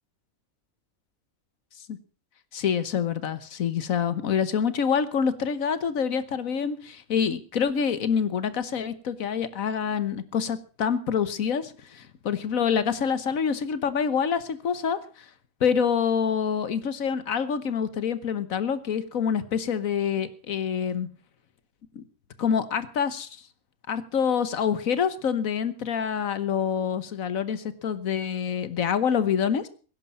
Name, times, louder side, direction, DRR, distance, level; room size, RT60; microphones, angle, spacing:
voice 1, 2.5-15.0 15.6-21.1 21.9-22.0 22.4-23.3 23.9-29.7, left 7 dB, 75° left, 14 dB, 1.5 m, -26 dB
17.0 x 10.5 x 5.5 m, 0.39 s
omnidirectional pair, 1.5 m